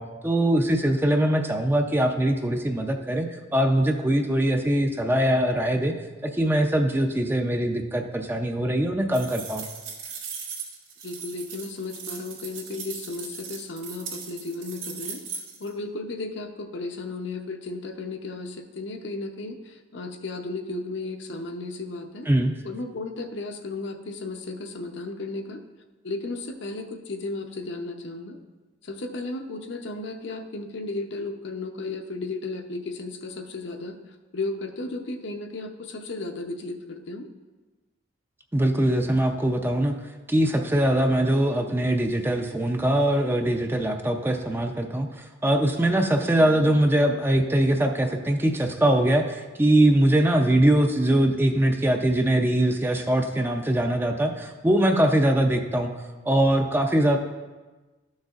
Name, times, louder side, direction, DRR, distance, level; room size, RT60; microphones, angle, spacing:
voice 1, 0.0-5.9 6.2-9.7 22.3-22.5 38.5-40.0 40.3-55.9 56.3-57.2, right 1 dB, 10° right, 4 dB, 0.4 m, -22 dB
sound 1, 9.1-15.7, right 6 dB, 80° right, 2.1 m, -38 dB
voice 2, 11.0-15.2 15.6-22.3 22.6-25.6 26.0-28.4 28.8-34.0 34.3-37.3, left 3 dB, 65° left, 5 dB, 0.7 m, -34 dB
12.5 x 6.4 x 2.4 m, 1.3 s
head